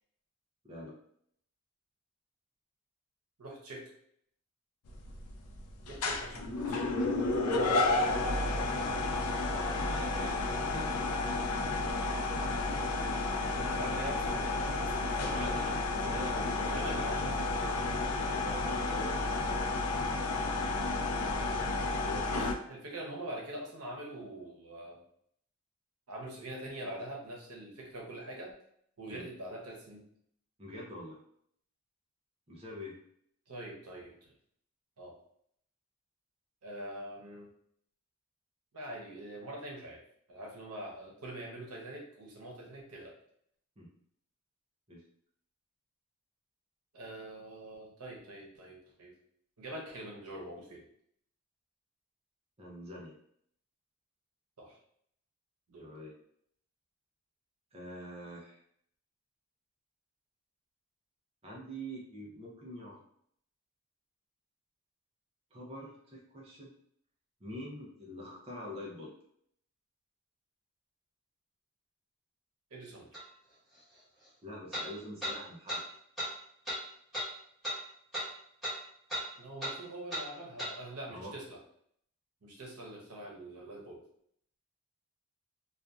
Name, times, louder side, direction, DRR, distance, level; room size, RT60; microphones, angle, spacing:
voice 1, 0.6-1.0 8.4-10.5 10.7-10.9 15.1-17.2 17.6-17.8 18.0-19.2 22.0-22.5 29.1-29.3 30.6-31.2 32.5-33.0 43.8-43.9 44.9-45.0 52.6-53.2 55.8-56.1 57.7-58.6 61.4-63.0 65.5-66.7 67.4-69.1 74.4-75.8 81.1-81.3, equal, 25° right, -4 dB, 0.5 m, -45 dB
voice 2, 3.4-3.9 5.8-7.1 13.6-15.5 16.5-17.5 22.3-25.0 26.1-28.5 29.0-30.1 33.5-34.3 35.0-35.2 36.6-37.5 38.7-40.0 40.3-43.1 46.9-49.1 49.6-50.9 54.6-54.8 55.7-55.9 72.7-73.1 79.4-81.6 82.4-84.0, right 1 dB, 85° right, -1 dB, 0.8 m, -44 dB
sound 1, 4.9-22.5, left 2 dB, 80° left, 0.4 m, -31 dB
sound 2, 73.1-73.2 74.7-74.9 75.2-75.4 75.7-75.8 76.2-76.3 76.7-76.8 77.1-77.3 77.6-77.8 78.1-78.3 78.6-78.8 79.1-79.3 79.6-79.8 80.1-80.3 80.6-80.7, equal, ahead, 1.2 m, -35 dB
2.6 x 2.4 x 2.3 m, 0.67 s
head